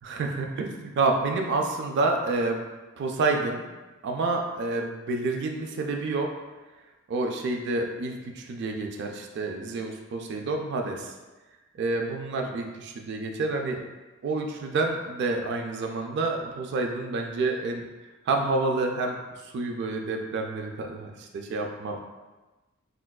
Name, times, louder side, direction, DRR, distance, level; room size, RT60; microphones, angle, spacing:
voice 1, 0.0-2.6 3.0-3.6 4.0-6.3 7.1-11.1 11.7-13.8 14.2-17.8 18.3-22.0, right 3 dB, 55° right, 2 dB, 0.3 m, -28 dB
4.3 x 2.2 x 2.2 m, 1.2 s
head